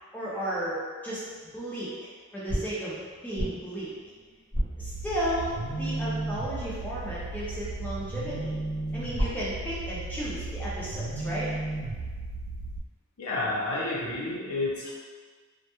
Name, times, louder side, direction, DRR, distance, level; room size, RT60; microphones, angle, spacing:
voice 1, 0.1-1.2 1.5-2.9 3.2-3.9 4.8-8.5 8.9-11.5, right 1 dB, 10° left, -8 dB, 0.3 m, -34 dB
sound 1, 1.2-1.9 2.5-5.6 8.3-9.8, equal, 55° right, 0.8 m, -35 dB
sound 2, 4.8-12.8, right 2 dB, 85° right, 0.3 m, -34 dB
voice 2, 13.2-14.9, left 2 dB, 85° left, -5 dB, 0.6 m, -30 dB
2.1 x 2.1 x 2.8 m, 1.5 s
head